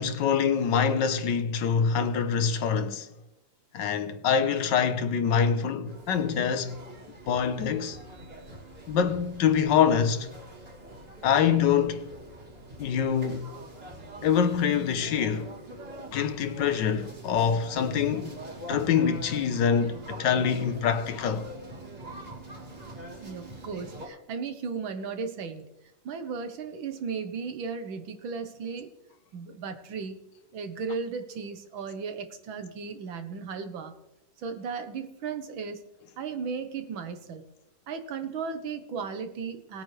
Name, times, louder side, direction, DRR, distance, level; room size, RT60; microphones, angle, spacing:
voice 1, 0.0-3.1 3.7-6.8 7.3-8.0 8.9-10.3 11.2-12.1 12.8-13.5 14.2-15.6 16.1-18.4 18.7-21.5, left 7 dB, 70° left, 1.4 m, -25 dB
sound 1, 5.8-24.1, right 1 dB, 30° right, 2.5 m, -44 dB
voice 2, 23.2-25.7 26.1-28.9 29.3-30.2 30.5-33.9 34.4-35.8 36.2-37.4 37.9-39.8, right 5 dB, 80° right, 1.8 m, -35 dB
19.0 x 8.9 x 3.2 m
omnidirectional pair, 2.1 m